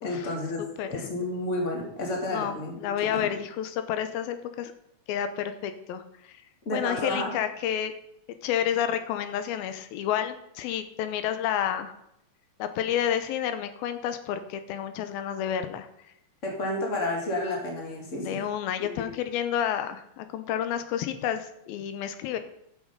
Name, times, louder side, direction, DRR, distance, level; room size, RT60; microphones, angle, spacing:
voice 1, 0.0-0.6 0.9-3.3 6.7-7.3 16.4-18.3 18.8-18.9, left 1 dB, 25° left, 0 dB, 2.1 m, -31 dB
voice 2, 0.8-1.1 2.3-4.7 5.1-6.4 6.7-7.9 8.4-12.0 12.6-15.9 18.2-22.4, left 10 dB, 90° left, 10 dB, 2.6 m, -30 dB
11.5 x 7.2 x 5.4 m, 0.77 s
omnidirectional pair, 4.2 m